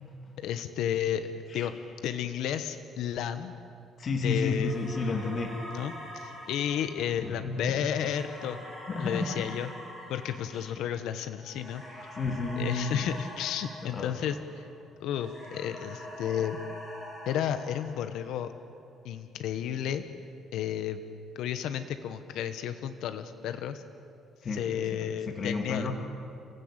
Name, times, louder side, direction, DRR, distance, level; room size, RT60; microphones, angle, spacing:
voice 1, 0.4-1.7 2.0-3.5 4.2-4.8 5.7-8.6 9.0-9.7 10.1-11.8 12.6-14.7 15.0-16.6 17.3-18.5 19.0-20.0 20.5-21.0 21.3-23.8 24.5-25.9, left 9 dB, 80° left, 10 dB, 1.1 m, -32 dB
voice 2, 4.0-5.6 7.2-7.7 8.9-9.4 10.5-10.6 12.1-13.1 13.8-14.1 24.4-24.7 25.3-25.9, left 3 dB, 40° left, 4 dB, 2.3 m, -31 dB
sound 1, 4.6-14.8 15.1-18.5, left 1 dB, 20° left, 7.2 m, -45 dB
30.0 x 16.0 x 8.9 m, 2.5 s
cardioid pair, 135°, 0 cm